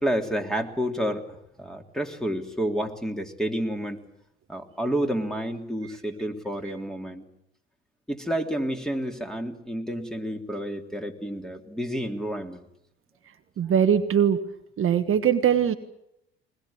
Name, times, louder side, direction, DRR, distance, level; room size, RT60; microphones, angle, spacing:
voice 1, 0.0-4.0 4.5-7.2 8.1-12.6, equal, ahead, 3 dB, 3.3 m, -30 dB
voice 2, 13.6-14.4 14.8-15.7, right 8 dB, 45° right, 7 dB, 1.5 m, -21 dB
22.5 x 21.0 x 8.7 m, 0.80 s
hypercardioid pair, 65°, 31 cm